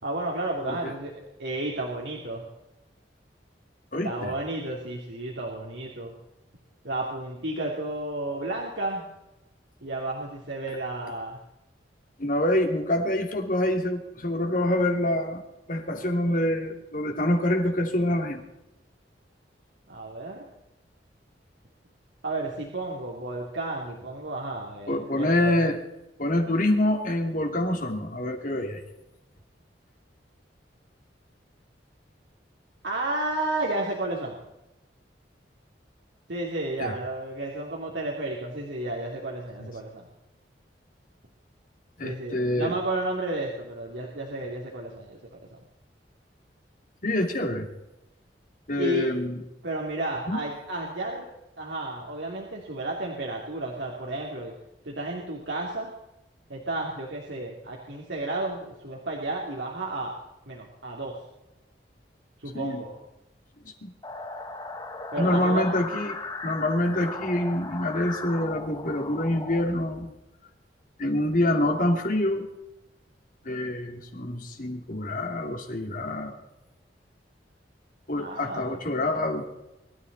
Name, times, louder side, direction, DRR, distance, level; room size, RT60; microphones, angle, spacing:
voice 1, 0.0-2.4 4.0-6.1 6.8-9.0 9.8-11.4 19.9-20.4 22.2-25.6 32.8-34.4 36.3-40.1 42.0-45.4 48.8-49.1 49.6-51.3 51.6-54.5 54.8-55.9 56.5-60.1 60.5-61.2 62.4-62.9 65.1-65.6 78.2-78.8, right 2 dB, 80° right, -2 dB, 2.9 m, -32 dB
voice 2, 3.9-4.3 12.2-15.4 15.7-18.4 24.9-25.8 26.2-28.8 36.8-36.9 39.6-39.7 42.0-42.7 47.0-47.7 48.7-49.4 50.3-50.4 62.5-62.8 63.8-63.9 65.2-66.2 66.4-70.1 71.0-72.5 73.4-76.3 78.1-79.4, left 1 dB, 50° left, 3 dB, 2.7 m, -26 dB
sound 1, 64.0-69.6, left 3 dB, 25° left, 1.4 m, -37 dB
23.5 x 13.0 x 4.1 m, 0.94 s
head